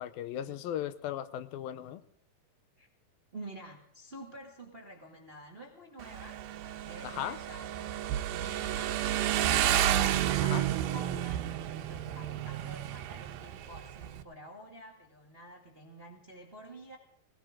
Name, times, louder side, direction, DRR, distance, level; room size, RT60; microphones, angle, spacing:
voice 1, 0.0-2.0 7.0-7.4 10.4-10.6, left 11 dB, 80° left, 13 dB, 2.5 m, -37 dB
voice 2, 3.3-8.0 8.3-17.0, right 2 dB, 25° right, 0 dB, 1.3 m, -49 dB
Motorcycle, 6.0-14.2, right 12 dB, 85° right, 2.7 m, -31 dB
21.0 x 17.5 x 3.7 m, 0.74 s
omnidirectional pair, 4.2 m